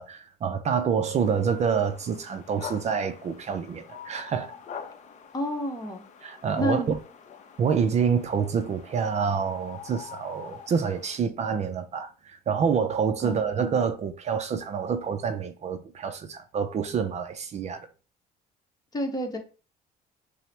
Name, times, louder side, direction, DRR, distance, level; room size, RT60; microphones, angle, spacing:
voice 1, 0.0-4.5 6.2-7.0 7.6-17.9, right 6 dB, 40° right, 0.4 m, -27 dB
sound 1, 1.2-11.2, left 6 dB, 45° left, 0.6 m, -45 dB
voice 2, 5.3-6.0 6.6-6.9 13.2-13.6 18.9-19.4, left 1 dB, 20° left, 0.9 m, -29 dB
5.5 x 2.0 x 3.2 m
cardioid pair, 110°, 17 cm